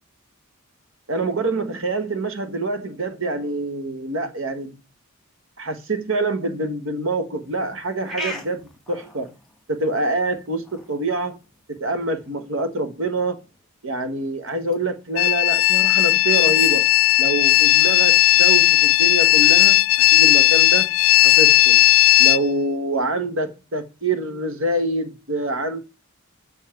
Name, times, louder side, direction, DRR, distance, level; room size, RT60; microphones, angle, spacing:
voice 1, 1.1-4.8 5.6-9.3 9.7-11.4 11.7-13.4 13.8-16.9 17.2-19.8 20.1-20.9 21.2-21.8 22.2-25.8, right 2 dB, 60° right, 1.3 m, -26 dB
sound 1, 7.4-21.5, equal, ahead, 1.6 m, -44 dB
sound 2, 15.2-22.4, left 17 dB, 65° left, 0.4 m, -15 dB
7.2 x 6.1 x 5.8 m
head